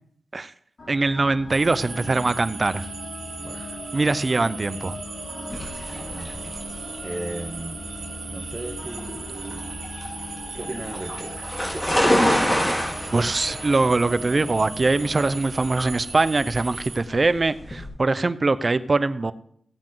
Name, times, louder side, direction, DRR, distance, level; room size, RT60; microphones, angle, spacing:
sound 1, 0.8-17.0, left 2 dB, 60° left, 4.8 m, -39 dB
voice 1, 0.9-2.9 3.9-5.0 13.1-19.3, right 3 dB, 50° right, 15 dB, 0.7 m, -22 dB
sound 2, 1.5-17.0, right 4 dB, 80° right, 2.0 m, -38 dB
sound 3, 5.5-17.9, equal, 20° left, 4.8 m, -28 dB
voice 2, 5.9-6.4 7.0-7.8 8.3-9.6 10.5-11.3 11.7-12.1 12.4-12.9, right 1 dB, 25° right, 0 dB, 1.9 m, -36 dB
16.5 x 8.8 x 4.0 m, 0.66 s
cardioid pair, 45°, 0 cm